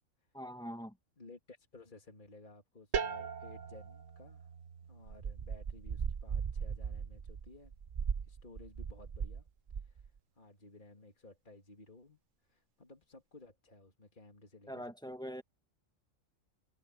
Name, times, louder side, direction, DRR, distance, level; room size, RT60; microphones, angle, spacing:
voice 1, 0.3-0.9 14.7-15.4, equal, 5° left, 1.3 m, -43 dB
voice 2, 1.2-4.5 4.8-7.7 8.2-9.5 9.8-12.2 12.5-15.1, left 2 dB, 40° left, 2.9 m, -57 dB
sound 1, 2.9-8.5, right 6 dB, 80° right, 1.5 m, -43 dB
sound 2, 5.1-9.4 9.7-10.1, right 6 dB, 60° right, 0.3 m, -38 dB
omnidirectional pair, 1.3 m